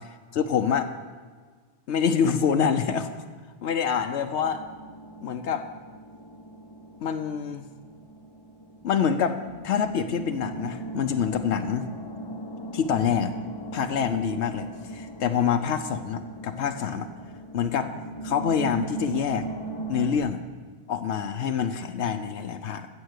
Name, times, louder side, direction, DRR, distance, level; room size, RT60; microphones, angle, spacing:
voice 1, 0.3-0.9 1.9-3.1 3.6-4.6 5.2-5.7 7.0-7.6 8.8-9.4 9.6-11.9 12.7-13.3 13.7-17.1 17.5-17.9 18.2-19.5 19.9-20.4 20.9-22.9, left 7 dB, 85° left, 7 dB, 1.0 m, -26 dB
sound 1, 4.4-20.2, right 2 dB, 25° left, 0.8 m, -38 dB
15.5 x 6.9 x 6.5 m, 1.5 s
omnidirectional pair, 1.1 m